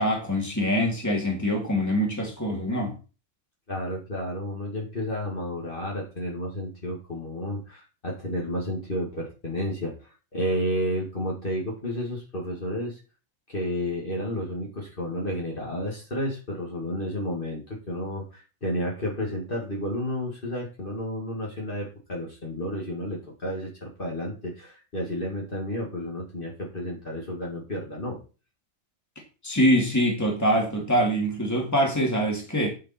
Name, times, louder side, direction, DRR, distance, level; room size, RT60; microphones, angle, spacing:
voice 1, 0.0-2.9 29.4-32.7, equal, 10° left, 0 dB, 2.6 m, -24 dB
voice 2, 3.7-13.0 13.5-28.2, equal, 40° left, -3 dB, 2.3 m, -31 dB
9.7 x 6.8 x 4.4 m, 0.34 s
omnidirectional pair, 1.4 m